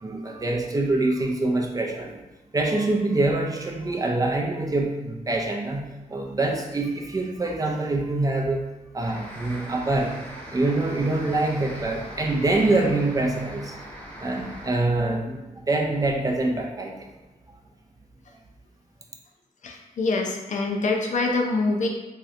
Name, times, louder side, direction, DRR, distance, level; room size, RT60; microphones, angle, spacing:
voice 1, 0.0-2.2 2.5-8.6 8.9-10.2 10.5-13.7 14.2-17.1, right 2 dB, 25° right, 1 dB, 0.4 m, -25 dB
sound 1, 9.0-14.7, equal, 10° left, 0.7 m, -40 dB
voice 2, 19.6-21.9, left 3 dB, 60° left, 1 dB, 0.5 m, -25 dB
3.1 x 2.8 x 2.4 m, 1.1 s
wide cardioid pair, 125°, 14 cm